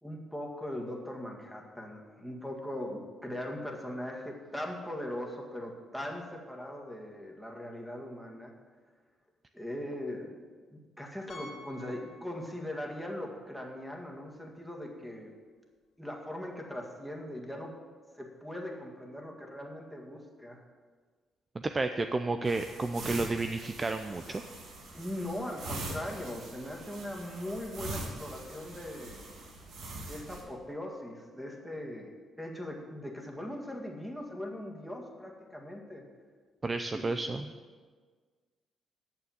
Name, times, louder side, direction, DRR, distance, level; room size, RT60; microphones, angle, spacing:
voice 1, 0.0-8.5 9.5-10.4 10.7-15.3 16.0-17.7 18.1-20.6 24.9-29.3 30.1-36.0 36.9-37.1, left 1 dB, ahead, 1 dB, 1.9 m, -40 dB
Piano, 11.3-12.9 13.2-13.3 13.9-14.0 14.3-14.4 16.4-16.5, left 2 dB, 60° left, 2.6 m, -50 dB
voice 2, 21.6-24.4 36.6-37.5, right 3 dB, 25° right, 7 dB, 0.5 m, -31 dB
sound 1, 22.4-30.4, right 2 dB, 75° right, 2.4 m, -43 dB
8.9 x 6.8 x 7.2 m, 1.5 s
cardioid pair, 90°, 0 cm